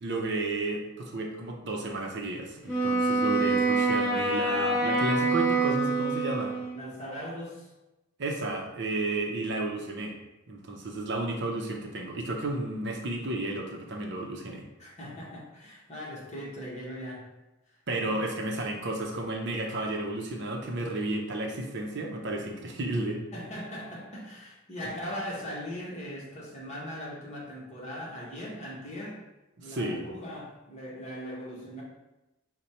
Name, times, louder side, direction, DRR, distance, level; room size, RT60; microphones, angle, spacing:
voice 1, 0.0-6.5 8.2-10.1 10.5-14.6 17.9-23.2 29.6-30.0, right 2 dB, 50° right, 1 dB, 0.6 m, -32 dB
Wind instrument woodwind instrument, 2.7-6.8, right 3 dB, 10° left, 1.5 m, -26 dB
voice 2, 6.7-7.7 14.8-17.3 18.0-18.1 23.3-29.2 29.6-31.8, equal, 30° left, -5 dB, 1.1 m, -39 dB
5.3 x 2.2 x 4.3 m, 1.0 s
head